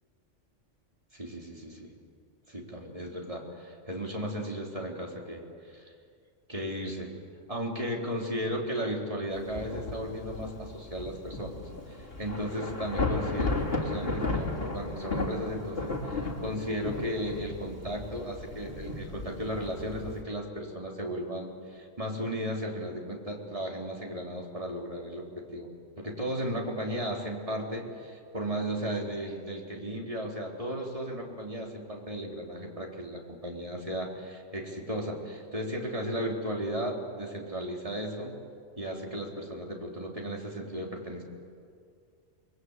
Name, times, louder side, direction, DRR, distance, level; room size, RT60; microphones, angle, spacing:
voice 1, 1.1-1.9 2.5-5.8 6.5-7.1 7.5-11.6 11.9-25.7 26.0-38.3 38.8-41.2, equal, 30° right, -1 dB, 3.7 m, -35 dB
Thunder / Rain, 9.3-20.2, left 2 dB, 50° left, 3.2 m, -35 dB
28.5 x 21.5 x 8.1 m, 2.2 s
omnidirectional pair, 1.3 m